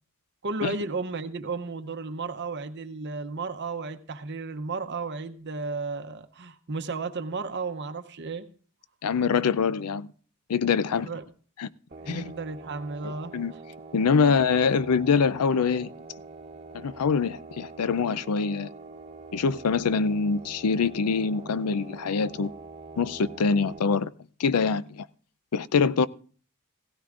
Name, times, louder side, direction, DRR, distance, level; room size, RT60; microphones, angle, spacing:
voice 1, 0.4-8.5 10.9-11.3 12.0-13.4 14.2-14.3, right 3 dB, 50° right, 0.7 m, -33 dB
voice 2, 9.0-10.1 10.5-11.1 11.6-11.7 12.1-12.3 13.0-13.5 13.9-15.9 16.7-18.7 19.3-22.5 23.0-24.1 24.4-25.1 25.5-26.1, left 5 dB, 85° left, 0.5 m, -24 dB
sound 1, 11.9-23.8, right 3 dB, 30° right, 1.1 m, -45 dB
16.5 x 16.0 x 2.5 m
head